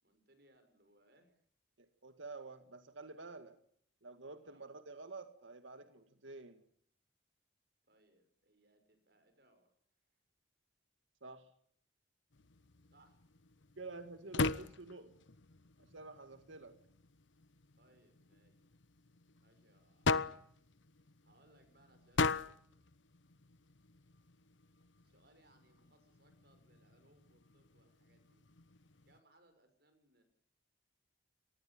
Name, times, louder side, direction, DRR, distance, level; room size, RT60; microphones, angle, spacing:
voice 1, 0.0-1.5 4.4-4.6 7.9-9.7 12.9-13.2 17.8-18.5 19.4-20.7 21.2-22.5 25.0-28.6 29.0-30.2, right 1 dB, 55° right, 7 dB, 6.5 m, -70 dB
voice 2, 1.8-3.6 4.0-6.6 11.2-11.5 13.8-15.1 15.8-16.8, right 3 dB, 80° right, 9 dB, 2.0 m, -50 dB
sound 1, 12.3-29.2, left 4 dB, 75° left, 1.0 m, -42 dB
23.5 x 19.5 x 8.6 m, 0.65 s
head